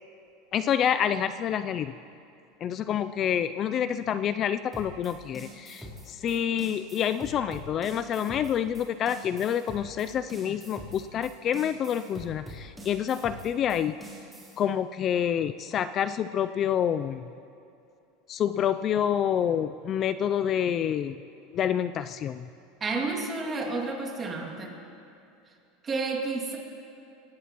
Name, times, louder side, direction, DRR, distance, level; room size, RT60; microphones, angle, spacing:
voice 1, 0.5-1.9 2.6-14.0 14.6-17.3 18.3-21.2 21.5-22.5, left 9 dB, 35° left, 12 dB, 0.3 m, -28 dB
sound 1, 4.7-14.6, equal, ahead, 3.7 m, -44 dB
voice 2, 22.8-24.8 25.8-26.6, right 3 dB, 20° right, 0 dB, 2.3 m, -31 dB
23.5 x 18.0 x 3.0 m, 2.7 s
supercardioid pair, 140°, 0 cm